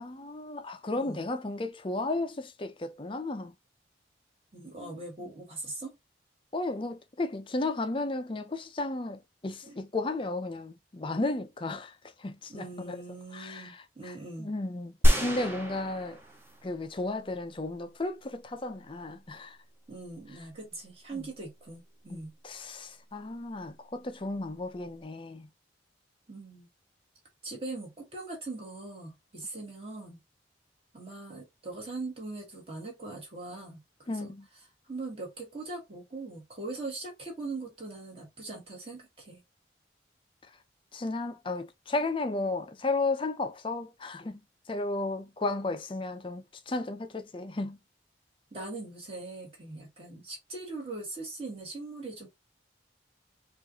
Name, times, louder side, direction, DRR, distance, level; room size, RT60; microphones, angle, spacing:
voice 1, 0.0-3.5 4.8-5.0 6.5-13.0 13.3-16.2 16.6-19.6 21.1-21.3 22.1-25.5 34.1-34.5 40.9-44.4 44.7-47.8, left 2 dB, 30° left, 0.5 m, -34 dB
voice 2, 4.5-6.0 9.6-9.8 12.5-14.5 19.9-22.4 26.3-26.7 27.4-30.2 30.9-33.8 34.1-34.3 34.9-39.4 48.5-52.3, right 3 dB, 30° right, 1.7 m, -41 dB
sound 1, 15.0-16.8 17.3-17.4, equal, 10° right, 0.7 m, -26 dB
4.6 x 2.6 x 2.8 m
head